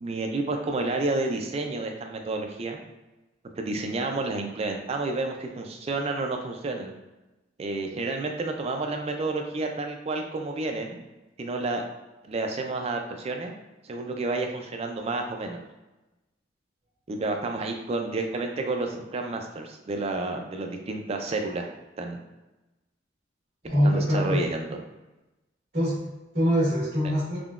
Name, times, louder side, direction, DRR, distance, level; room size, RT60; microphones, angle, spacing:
voice 1, 0.0-2.8 3.6-6.9 7.6-11.1 11.4-11.8 12.2-13.5 13.8-15.6 17.1-21.7 22.0-22.2 23.8-24.8, right 2 dB, 35° right, 3 dB, 0.3 m, -30 dB
voice 2, 23.6-24.4 25.7-27.4, equal, 50° right, -10 dB, 1.4 m, -24 dB
3.6 x 2.2 x 2.4 m, 1.0 s
head